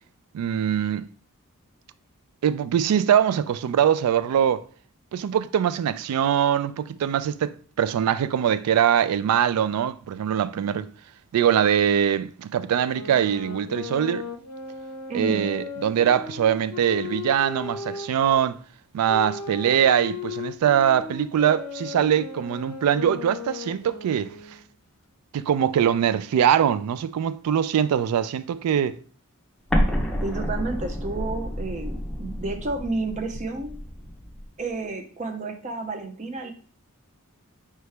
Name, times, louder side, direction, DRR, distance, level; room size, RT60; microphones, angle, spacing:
voice 1, 0.3-1.1 2.4-4.6 5.1-10.9 11.3-14.3 15.1-18.6 18.9-24.3 25.3-29.0, right 9 dB, 80° right, 0.3 m, -22 dB
sound 1, 12.9-18.4 19.1-24.6, left 5 dB, 85° left, 0.5 m, -36 dB
voice 2, 15.1-15.5 30.2-33.7 34.6-36.5, right 3 dB, 35° right, 0.6 m, -31 dB
Explosion, 29.7-34.5, equal, 5° left, 0.7 m, -29 dB
4.6 x 3.0 x 3.3 m
head